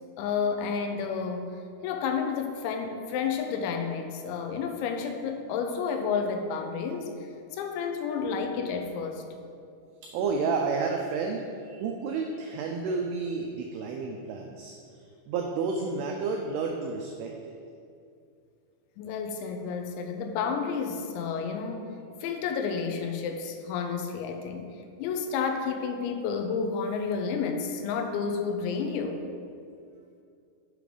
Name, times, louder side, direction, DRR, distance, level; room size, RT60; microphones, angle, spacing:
voice 1, 0.2-9.2 19.0-21.9 22.2-29.2, left 5 dB, 85° left, 5 dB, 3.0 m, -31 dB
voice 2, 10.0-17.6, right 4 dB, 90° right, 2 dB, 2.3 m, -31 dB
7.7 x 4.9 x 5.1 m, 2.4 s
omnidirectional pair, 5.2 m